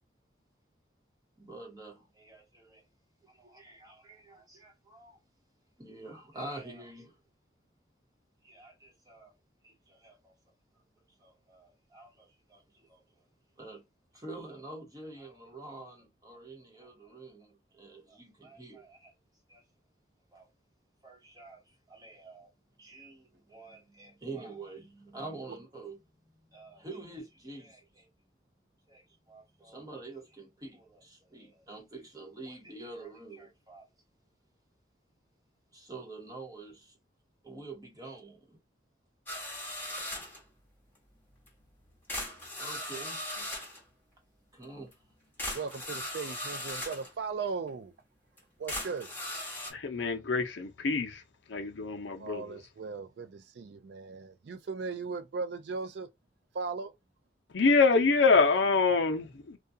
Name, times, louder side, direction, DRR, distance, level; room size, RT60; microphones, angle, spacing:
voice 1, 1.4-2.8 3.2-5.2 5.8-7.2 8.4-9.3 9.6-10.3 11.2-13.0 13.6-13.8 14.1-19.1 19.5-19.6 20.3-20.5 21.0-22.5 22.8-26.0 26.5-28.1 28.9-33.9 35.7-37.0 37.4-38.6 40.1-40.2 42.6-43.5 44.5-45.0, right 2 dB, 20° right, 1.0 m, -47 dB
sound 1, 39.3-40.4 41.5-41.6 42.1-43.8 44.9-45.0 45.4-47.1 47.7-47.8 48.4-48.5 48.7-49.7, left 1 dB, 10° left, 0.9 m, -38 dB
voice 2, 45.5-47.9 48.6-49.1 52.2-56.1 56.5-56.9, right 4 dB, 60° right, 0.4 m, -37 dB
voice 3, 49.8-51.2 51.5-52.4 57.5-59.6, left 4 dB, 75° left, 0.6 m, -25 dB
2.4 x 2.3 x 2.6 m
head